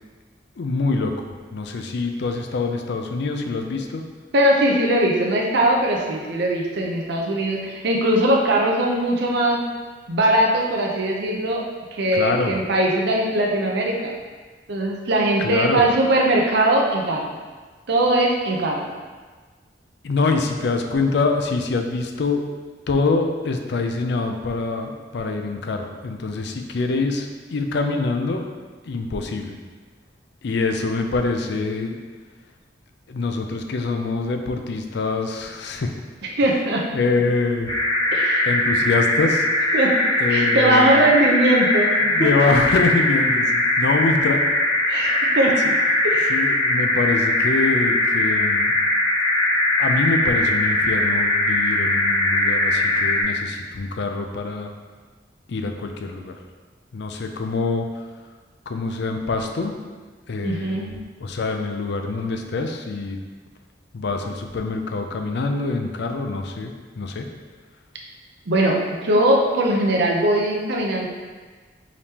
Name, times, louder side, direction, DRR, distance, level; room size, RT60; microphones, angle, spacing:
voice 1, 0.6-1.1 1.5-4.0 12.1-12.6 15.4-15.8 20.0-22.4 22.9-28.4 28.9-29.6 30.4-31.9 33.1-35.9 36.9-37.8 38.5-39.5 40.2-41.0 42.1-44.4 45.6-45.8 46.3-48.7 49.8-54.7 55.5-56.3 56.9-58.0 58.7-59.7 60.3-60.9 61.2-63.2 63.9-67.3, left 3 dB, 65° left, 5 dB, 0.4 m, -25 dB
voice 2, 4.3-9.6 10.1-11.6 11.9-14.1 14.7-17.2 17.9-18.9 36.4-36.8 38.1-38.5 39.7-40.0 40.3-41.9 42.2-42.3 44.9-45.6 46.0-46.3 60.4-60.9 68.5-71.1, right 1 dB, 65° right, -1 dB, 0.6 m, -20 dB
sound 1, 37.7-53.2, left 1 dB, 20° left, 0.8 m, -20 dB
4.9 x 3.4 x 2.8 m, 1.4 s
head